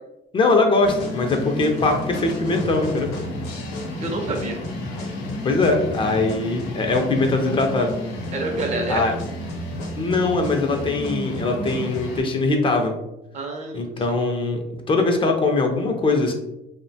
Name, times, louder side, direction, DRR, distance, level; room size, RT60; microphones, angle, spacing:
voice 1, 0.3-3.1 5.4-7.9 8.9-9.1 10.0-12.9 13.7-16.3, left 3 dB, 30° left, 3 dB, 0.4 m, -21 dB
sound 1, 0.8-12.2, left 1 dB, 90° left, 0.7 m, -31 dB
voice 2, 4.0-4.6 8.3-9.1 13.3-14.2, right 3 dB, 45° right, 3 dB, 0.5 m, -28 dB
2.7 x 2.1 x 2.6 m, 0.90 s
cardioid pair, 110°, 17 cm